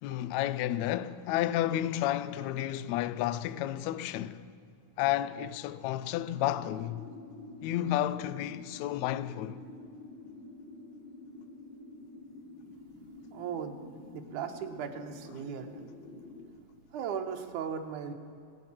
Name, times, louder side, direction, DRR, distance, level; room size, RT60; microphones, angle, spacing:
voice 1, 0.0-4.5 5.0-7.1 7.6-9.6, left 13 dB, 80° left, 1.8 m, -31 dB
sound 1, 6.4-16.5, left 2 dB, 45° left, 2.1 m, -48 dB
voice 2, 13.3-13.8 14.1-15.8 16.9-18.1, right 7 dB, 90° right, 2.5 m, -37 dB
22.0 x 9.5 x 5.9 m
omnidirectional pair, 3.4 m